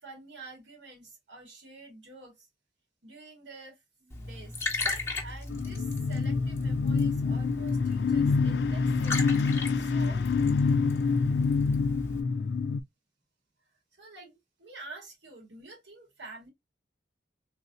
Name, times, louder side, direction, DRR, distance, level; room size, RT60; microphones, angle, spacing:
voice 1, 0.0-2.5 3.0-4.5 5.2-9.2 9.7-10.3 13.9-16.5, right 3 dB, 75° right, 2.1 m, -48 dB
Liquid, 4.1-12.2, left 3 dB, 15° left, 1.2 m, -37 dB
sound 1, 5.5-12.8, left 4 dB, 60° left, 0.3 m, -26 dB
3.8 x 2.8 x 2.4 m
head